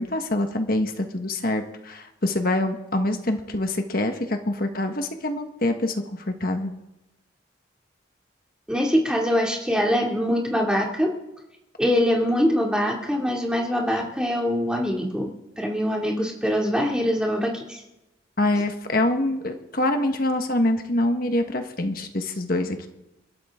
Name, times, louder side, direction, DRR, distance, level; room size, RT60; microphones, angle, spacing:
voice 1, 0.0-6.7 18.4-22.9, left 1 dB, 50° left, 5 dB, 1.5 m, -25 dB
voice 2, 8.7-11.1 11.8-15.3 15.6-17.8, equal, 5° right, -1 dB, 2.6 m, -23 dB
30.0 x 12.5 x 3.8 m, 0.96 s
head